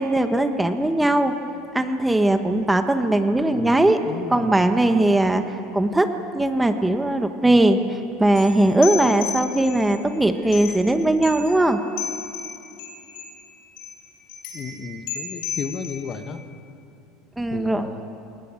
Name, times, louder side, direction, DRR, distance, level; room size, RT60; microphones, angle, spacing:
voice 1, 0.0-1.3 1.7-4.0 4.3-6.1 6.3-7.8 8.2-11.8 17.4-17.9, right 1 dB, 10° right, 7 dB, 1.5 m, -19 dB
voice 2, 3.5-4.6 14.5-16.4 17.5-18.0, left 6 dB, 40° left, 8 dB, 1.6 m, -34 dB
sound 1, 8.3-10.0 10.4-11.0 11.2-11.7 12.0-13.4 13.8-13.9 14.3-16.3, left 6 dB, 70° left, 6.7 m, -34 dB
21.0 x 19.0 x 9.1 m, 2.7 s
supercardioid pair, 105°, 0 cm